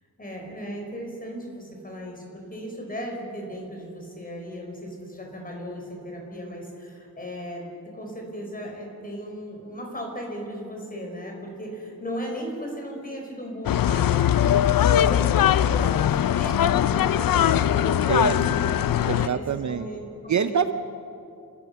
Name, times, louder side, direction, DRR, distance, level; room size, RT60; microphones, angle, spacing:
voice 1, 0.2-7.7 7.9-20.6, equal, 25° left, 1 dB, 5.1 m, -36 dB
sound 1, 13.6-19.3, left 10 dB, 65° left, 0.5 m, -21 dB
voice 2, 18.1-18.4 19.1-19.9 20.3-20.7, right 7 dB, 50° right, 11 dB, 0.7 m, -25 dB
30.0 x 14.0 x 7.0 m, 2.6 s
wide cardioid pair, 125°, 36 cm